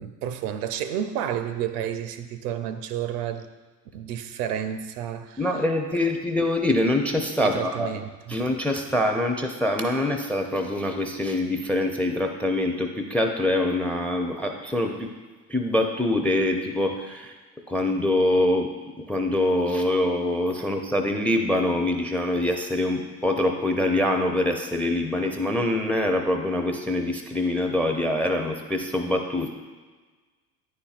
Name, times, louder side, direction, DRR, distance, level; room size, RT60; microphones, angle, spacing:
voice 1, 0.0-3.5 3.9-5.4 7.4-8.4 20.6-20.7, right 9 dB, 70° right, 10 dB, 0.6 m, -31 dB
voice 2, 5.4-7.9 8.3-15.1 15.5-17.3 17.7-18.7 19.1-29.5, left 1 dB, 5° left, 5 dB, 0.4 m, -24 dB
9.7 x 4.3 x 2.4 m, 1.4 s
hypercardioid pair, 65°, 49 cm